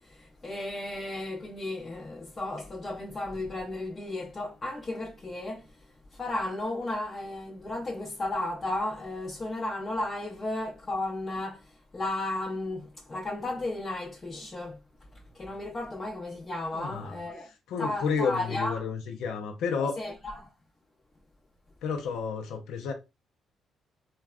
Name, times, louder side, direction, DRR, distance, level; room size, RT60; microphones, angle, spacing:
voice 1, 0.0-5.7 6.1-11.6 11.9-14.8 15.3-17.5 17.8-18.8 19.8-20.5, left 2 dB, 30° left, 0.8 m, -34 dB
voice 2, 16.7-17.2 17.7-20.0 21.8-22.9, left 5 dB, 80° left, 0.5 m, -31 dB
3.4 x 2.2 x 2.4 m
cardioid pair, 90°, 0 cm